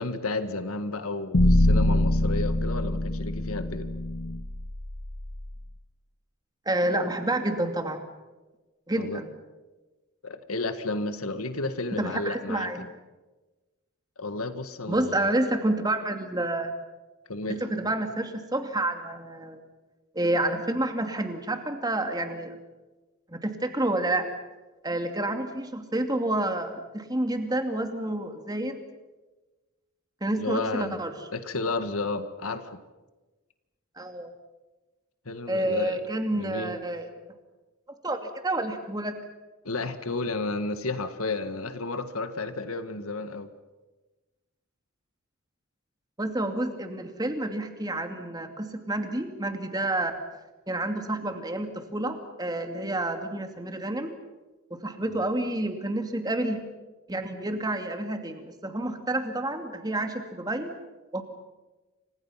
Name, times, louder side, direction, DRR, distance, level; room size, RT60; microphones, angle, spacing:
voice 1, 0.0-3.9 8.9-9.2 10.2-12.9 14.2-15.3 17.3-17.6 30.4-31.0 31.3-32.8 35.3-36.0 36.3-36.8 39.6-43.5, left 3 dB, 85° left, 9 dB, 1.8 m, -32 dB
sound 1, 1.3-5.5, left 1 dB, 65° left, 1.7 m, -24 dB
voice 2, 6.7-8.0 8.9-9.3 11.9-12.9 14.9-16.7 17.6-19.6 20.1-22.6 23.3-24.3 24.8-28.8 30.2-31.2 34.0-34.3 35.5-37.1 38.0-39.1 46.2-50.2 50.7-54.1 54.7-56.6 57.1-60.7 61.1-61.2, right 1 dB, 20° right, 6 dB, 2.5 m, -29 dB
29.5 x 26.0 x 5.9 m, 1.2 s
head